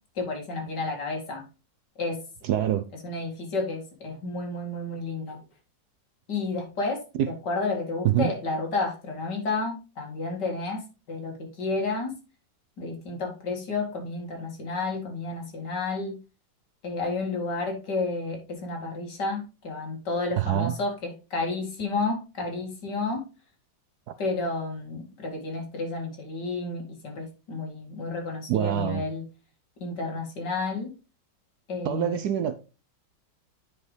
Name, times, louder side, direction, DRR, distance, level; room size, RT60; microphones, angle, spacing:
voice 1, 0.2-1.4 2.0-2.2 3.0-5.4 6.3-10.8 11.1-12.1 12.8-16.2 16.8-23.3 24.2-29.2 29.8-30.9 31.7-32.2, left 3 dB, 65° left, 2.7 m, -31 dB
voice 2, 2.4-2.8 7.2-7.3 8.0-8.3 20.4-20.7 28.5-29.0 31.8-32.6, right 11 dB, 70° right, 1.0 m, -25 dB
9.3 x 5.2 x 3.2 m
omnidirectional pair, 2.0 m